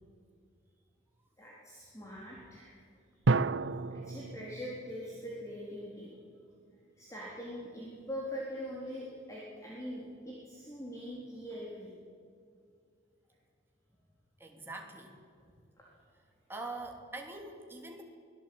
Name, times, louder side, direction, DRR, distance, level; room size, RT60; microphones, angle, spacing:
voice 1, 1.4-2.8 4.0-6.1 7.0-11.9 15.8-15.9, equal, 15° left, -4 dB, 3.8 m, -42 dB
sound 1, 3.2-6.0, right 3 dB, 70° right, 0.6 m, -32 dB
voice 2, 14.4-15.1 15.4-15.6 16.5-18.0, right 2 dB, 10° right, 1 dB, 2.8 m, -43 dB
24.5 x 17.5 x 8.7 m, 2.3 s
head